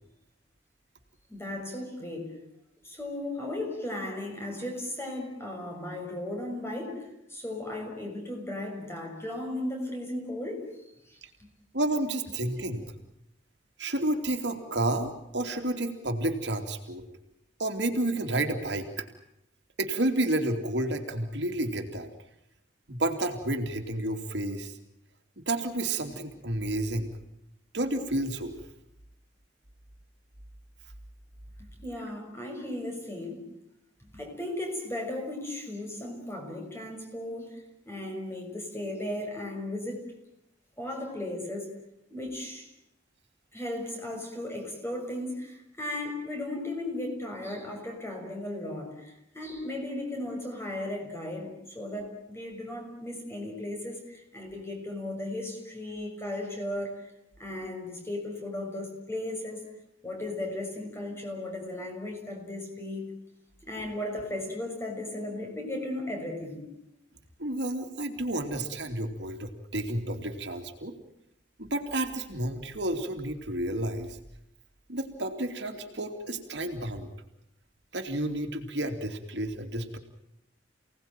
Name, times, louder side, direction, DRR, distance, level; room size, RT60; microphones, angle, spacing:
voice 1, 1.3-2.4 2.8-11.2 31.8-33.5 34.1-40.0 40.8-41.7 42.1-42.7 43.5-57.1 57.4-59.6 60.0-63.1 63.6-66.6, left 1 dB, 15° left, 2 dB, 6.7 m, -36 dB
voice 2, 11.7-12.9 13.8-17.0 17.6-19.1 19.8-22.1 22.9-24.8 25.4-27.1 27.7-28.6 67.4-70.9 71.6-74.2 74.9-77.1 77.9-80.0, right 1 dB, 65° right, 5 dB, 2.9 m, -31 dB
29.5 x 18.5 x 9.1 m, 0.83 s
head